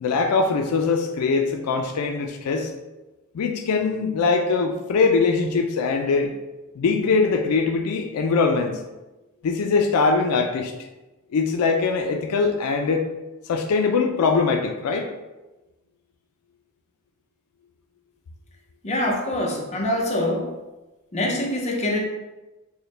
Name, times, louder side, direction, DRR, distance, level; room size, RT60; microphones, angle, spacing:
voice 1, 0.0-2.7 3.3-6.3 6.8-8.8 9.4-10.7 11.3-13.1 13.5-15.1, left 4 dB, 80° left, 4 dB, 0.4 m, -22 dB
voice 2, 18.8-20.6 21.1-22.0, left 1 dB, 30° left, 0 dB, 0.7 m, -24 dB
4.5 x 2.1 x 3.2 m, 1.1 s
head